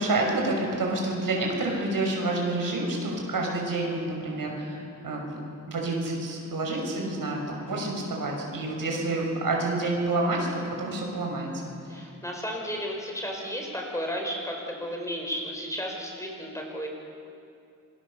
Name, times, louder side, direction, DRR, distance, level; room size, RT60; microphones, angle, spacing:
voice 1, 0.0-5.4 5.7-11.6, right 2 dB, 80° right, 0 dB, 5.8 m, -28 dB
voice 2, 11.9-16.9, equal, 10° left, 0 dB, 4.8 m, -33 dB
27.0 x 21.0 x 7.0 m, 2.5 s
wide cardioid pair, 120°, 34 cm